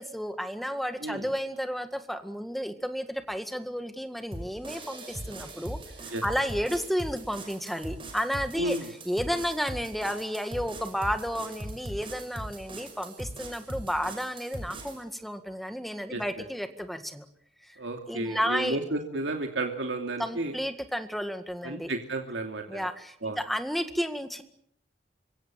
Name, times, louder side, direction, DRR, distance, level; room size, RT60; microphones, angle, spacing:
voice 1, 0.0-5.8 6.2-8.8 9.1-17.3 17.6-17.8 18.1-18.8 20.2-21.9 22.7-24.4, equal, ahead, 8 dB, 1.8 m, -32 dB
sound 1, 4.3-15.0, right 1 dB, 25° right, 5.9 m, -41 dB
voice 2, 8.6-8.9 16.1-16.2 17.8-20.6 21.6-22.8 23.2-23.4, right 2 dB, 75° right, 3 dB, 2.6 m, -32 dB
25.5 x 23.5 x 7.6 m, 0.70 s
head